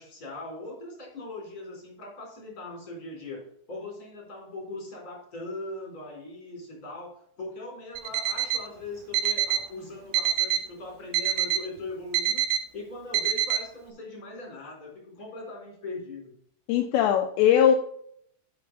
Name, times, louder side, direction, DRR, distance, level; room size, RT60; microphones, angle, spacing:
voice 1, 0.0-3.4 3.7-12.4 12.7-16.3, left 2 dB, 20° left, -2 dB, 3.9 m, -40 dB
Alarm, 8.0-8.7 9.1-9.7 10.1-10.7 11.1-11.7 12.1-12.6 13.1-13.6, right 10 dB, 85° right, 3.1 m, -26 dB
voice 2, 16.7-17.8, left 9 dB, 85° left, 4 dB, 2.5 m, -20 dB
8.9 x 6.7 x 4.1 m, 0.68 s
omnidirectional pair, 5.8 m